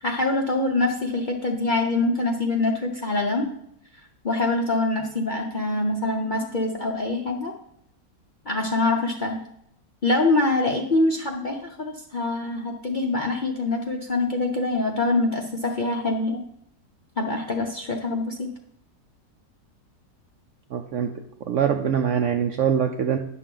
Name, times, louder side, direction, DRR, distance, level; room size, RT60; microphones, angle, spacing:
voice 1, 0.0-3.5 4.2-7.5 8.5-9.4 10.0-16.4 17.2-18.5, left 2 dB, 50° left, 1 dB, 0.6 m, -24 dB
voice 2, 20.7-21.1 21.5-23.2, right 8 dB, 70° right, 5 dB, 0.7 m, -23 dB
9.9 x 6.2 x 3.8 m, 0.73 s
omnidirectional pair, 1.7 m